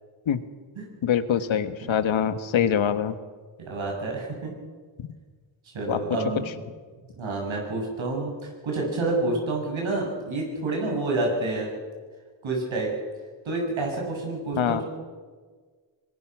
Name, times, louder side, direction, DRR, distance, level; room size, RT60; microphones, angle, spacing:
voice 1, 1.0-3.2 5.0-5.1 5.9-6.0 14.6-14.8, left 8 dB, 85° left, 11 dB, 1.5 m, -24 dB
voice 2, 3.6-4.5 5.7-6.6 7.2-11.7 12.4-12.9 13.4-14.8, right 2 dB, 85° right, 0 dB, 7.8 m, -28 dB
24.5 x 20.5 x 6.2 m, 1.5 s
cardioid pair, 85°, 46 cm